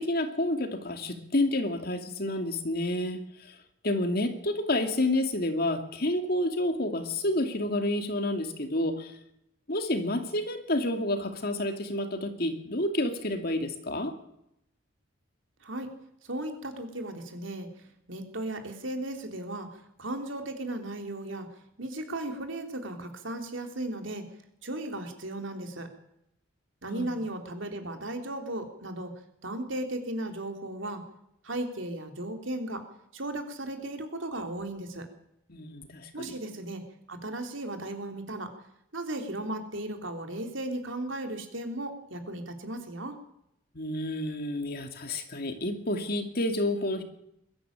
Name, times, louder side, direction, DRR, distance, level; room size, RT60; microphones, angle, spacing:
voice 1, 0.0-3.6 3.8-9.2 9.7-14.1 26.9-27.2 35.5-36.3 43.7-47.0, left 1 dB, 50° left, 6 dB, 2.5 m, -29 dB
voice 2, 16.2-17.7 18.1-21.5 21.8-24.2 24.6-25.9 26.8-29.1 29.4-31.0 31.4-32.8 33.1-35.1 36.1-36.8 37.1-38.5 38.9-43.2, right 1 dB, 70° right, 5 dB, 3.4 m, -36 dB
22.0 x 13.0 x 8.9 m, 0.78 s
head